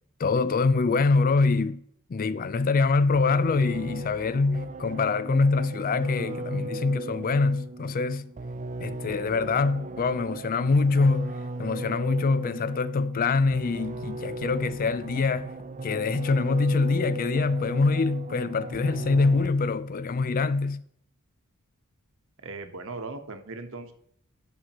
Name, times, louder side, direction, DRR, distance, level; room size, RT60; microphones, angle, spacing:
voice 1, 0.2-1.8 2.1-8.3 8.8-15.5 15.8-20.8, left 4 dB, 40° left, 0.4 m, -24 dB
sound 1, 3.1-19.8, right 2 dB, 35° right, 0.5 m, -37 dB
voice 2, 22.4-23.9, right 3 dB, 60° right, 1.1 m, -38 dB
11.5 x 6.5 x 3.0 m
head